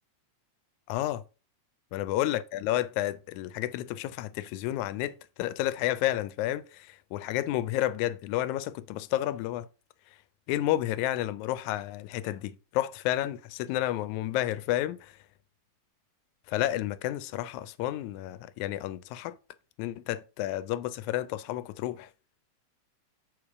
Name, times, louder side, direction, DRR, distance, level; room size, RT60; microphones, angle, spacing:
voice 1, 0.9-1.2 1.9-9.7 10.5-15.1 16.5-19.4 19.8-22.1, left 14 dB, 85° left, 2.0 m, -31 dB
6.8 x 4.6 x 4.7 m
omnidirectional pair, 3.3 m